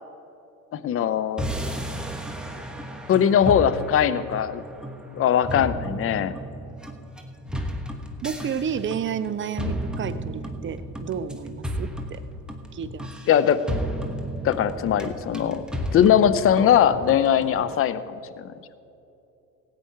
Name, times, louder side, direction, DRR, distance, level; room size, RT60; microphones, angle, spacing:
voice 1, 0.7-1.4 3.1-4.6 5.1-6.4 13.3-13.6 14.4-15.6 15.9-18.0 18.4-18.5, left 9 dB, 30° left, 13 dB, 0.7 m, -20 dB
sound 1, 1.4-17.7, equal, ahead, 1.2 m, -33 dB
voice 2, 8.2-12.2 12.7-13.1, right 7 dB, 25° right, 14 dB, 0.6 m, -31 dB
18.0 x 8.7 x 4.7 m, 2.8 s
figure-of-eight pair, 70°, 47 cm